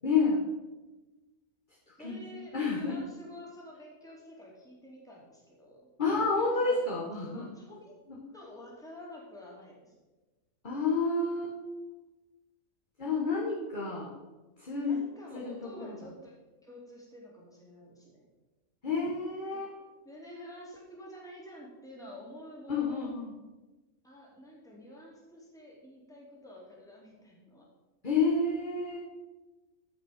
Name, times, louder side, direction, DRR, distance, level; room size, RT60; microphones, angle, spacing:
voice 1, 0.0-0.4 1.9-3.0 6.0-7.5 8.1-8.2 10.6-11.6 13.0-14.1 14.6-15.0 15.3-16.0 18.8-19.8 22.7-23.3 28.0-29.0, left 4 dB, 30° left, -4 dB, 1.6 m, -30 dB
voice 2, 2.0-5.9 6.6-6.7 7.3-7.9 8.3-9.9 14.8-16.3 16.6-18.2 19.5-23.1 24.0-27.7, equal, ahead, -4 dB, 2.7 m, -49 dB
14.0 x 5.8 x 5.1 m, 1.2 s
omnidirectional pair, 1.6 m